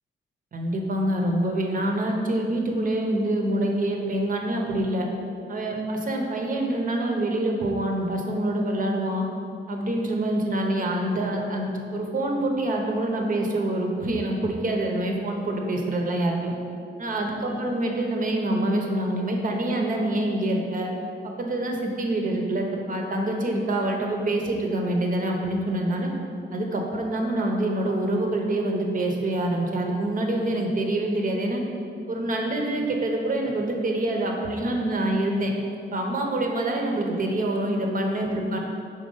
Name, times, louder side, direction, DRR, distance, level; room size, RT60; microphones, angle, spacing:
voice 1, 0.5-5.1 5.5-9.2 9.7-16.5 17.0-20.9 21.4-26.1 26.5-31.6 32.1-35.5 35.9-38.6, right 1 dB, 45° right, 1 dB, 0.7 m, -26 dB
5.2 x 4.1 x 5.4 m, 2.5 s
wide cardioid pair, 170°, 20 cm